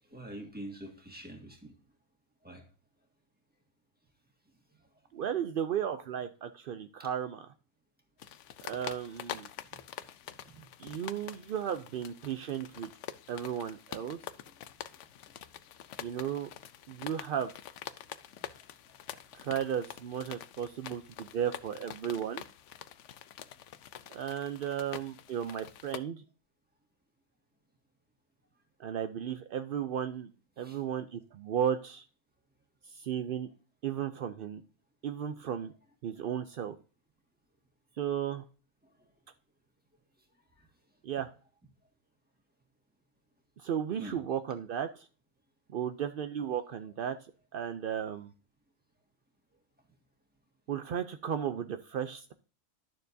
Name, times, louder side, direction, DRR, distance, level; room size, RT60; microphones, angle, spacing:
voice 1, 0.1-1.7 2.4-2.7 7.0-7.1 8.2-8.3 9.6-9.8 10.4-10.6 10.9-11.0 15.9-16.1 18.4-18.5 30.6-30.8 38.8-38.9 40.6-40.7 44.0-44.2, right 1 dB, 5° right, 2 dB, 1.7 m, -46 dB
voice 2, 5.1-7.5 8.6-9.5 10.8-12.9 13.3-14.2 16.0-16.5 16.9-17.5 19.3-22.4 24.1-26.2 28.8-30.3 30.6-32.0 32.8-33.5 33.8-34.6 35.0-35.7 36.0-36.8 38.0-38.4 41.0-41.3 43.6-45.1 45.7-47.2 47.5-48.3 50.7-52.3, right 9 dB, 70° right, 9 dB, 0.5 m, -34 dB
sound 1, 8.2-26.0, left 10 dB, 65° left, 0.9 m, -46 dB
12.0 x 6.8 x 2.7 m, 0.38 s
omnidirectional pair, 1.5 m